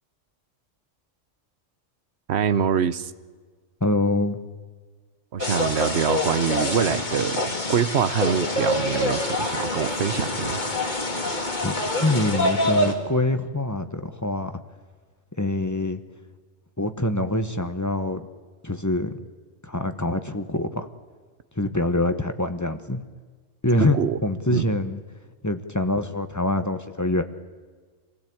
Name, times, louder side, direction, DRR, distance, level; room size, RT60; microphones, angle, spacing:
voice 1, 2.3-3.1 5.3-10.6 23.9-24.2 24.5-24.7, right 8 dB, 60° right, 14 dB, 1.1 m, -25 dB
voice 2, 3.8-4.4 11.6-14.6 15.4-16.0 16.8-18.2 18.6-19.2 19.6-20.9 21.6-23.0 23.6-25.0 25.4-27.2, left 2 dB, 15° left, 8 dB, 1.1 m, -25 dB
sound 1, 5.4-12.9, left 1 dB, 35° left, 2.6 m, -26 dB
26.0 x 16.5 x 8.7 m, 1.5 s
omnidirectional pair, 1.3 m